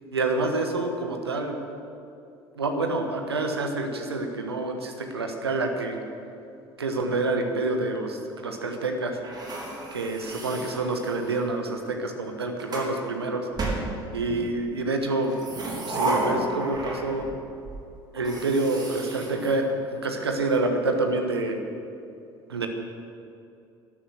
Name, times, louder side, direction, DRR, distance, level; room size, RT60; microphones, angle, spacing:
voice 1, 0.1-1.6 2.6-6.0 6.8-9.2 9.9-13.5 14.1-15.3 15.9-17.2 18.1-19.7 20.0-21.6 22.5-22.7, right 2 dB, 80° right, 4 dB, 1.2 m, -27 dB
sound 1, 9.2-11.5 12.2-12.9 13.6-14.5 15.2-17.4 17.6-17.8 18.2-20.2, right 2 dB, 30° right, 3.2 m, -32 dB
12.5 x 11.5 x 6.5 m, 2.7 s
figure-of-eight pair, 60°, 13 cm